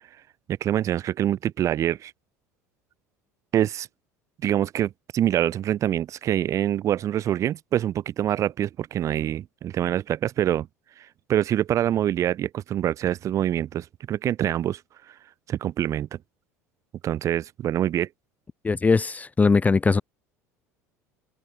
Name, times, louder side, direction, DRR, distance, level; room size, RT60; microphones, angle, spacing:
voice 1, 0.5-2.1 3.5-3.9 4.4-10.7 11.0-14.8 15.1-15.2 15.5-16.2 17.0-18.1, right 11 dB, 40° right, 0.5 m, -25 dB
voice 2, 18.6-20.0, left 4 dB, 20° left, 0.8 m, -20 dB
hypercardioid pair, 70°, 8 cm